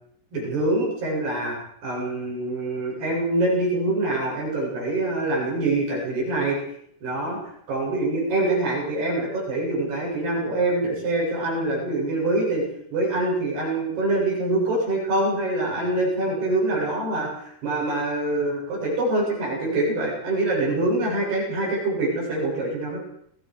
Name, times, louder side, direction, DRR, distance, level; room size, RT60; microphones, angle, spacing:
voice 1, 0.3-1.6 1.8-6.6 7.0-7.4 7.7-12.6 12.9-23.0, right 2 dB, 70° right, -3 dB, 9.8 m, -25 dB
30.0 x 23.0 x 5.0 m, 0.69 s
omnidirectional pair, 4.9 m